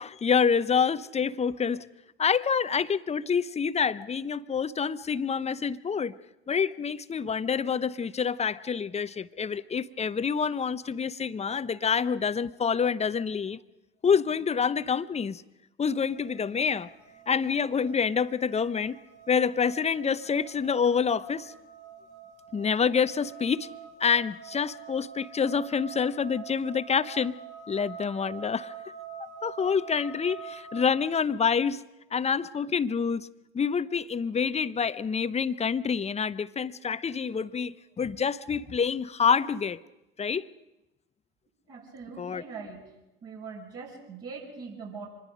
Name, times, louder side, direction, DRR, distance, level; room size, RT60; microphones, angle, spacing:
voice 1, 0.0-1.9 2.2-6.1 6.5-13.6 14.0-15.4 15.8-16.9 17.3-19.0 19.3-21.5 22.5-23.7 24.0-27.3 27.7-28.7 29.4-31.8 32.1-33.3 33.5-39.8 40.2-40.5 42.2-42.4, left 6 dB, 20° left, 15 dB, 0.7 m, -27 dB
sound 1, 15.9-30.9, right 7 dB, 70° right, 2.9 m, -46 dB
voice 2, 41.7-42.8 43.2-45.1, right 5 dB, 50° right, -3 dB, 6.4 m, -42 dB
25.5 x 21.0 x 5.2 m, 0.94 s
hypercardioid pair, 75°, 30 cm